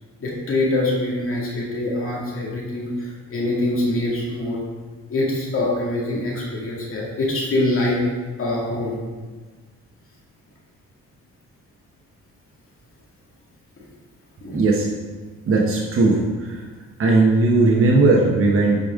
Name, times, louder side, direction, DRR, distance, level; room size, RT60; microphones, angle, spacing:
voice 1, 0.2-4.6 5.1-8.0 8.4-9.0 14.4-14.6, left 2 dB, 45° left, -4 dB, 2.2 m, -24 dB
voice 2, 14.5-14.8 15.5-16.6 17.0-18.8, right 3 dB, 45° right, -2 dB, 1.1 m, -17 dB
8.9 x 5.2 x 3.7 m, 1.4 s
cardioid pair, 90°, 30 cm